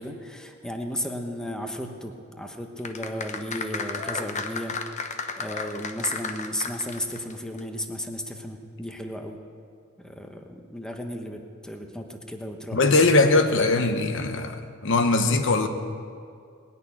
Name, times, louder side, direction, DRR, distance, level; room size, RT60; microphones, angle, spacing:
voice 1, 0.0-9.4 10.0-13.1, equal, 5° left, 4 dB, 1.0 m, -34 dB
sound 1, 2.8-7.3 7.6-7.7, left 4 dB, 35° left, 0.9 m, -33 dB
voice 2, 12.7-15.7, left 3 dB, 65° left, 7 dB, 1.1 m, -21 dB
19.5 x 6.7 x 9.9 m, 2.3 s
head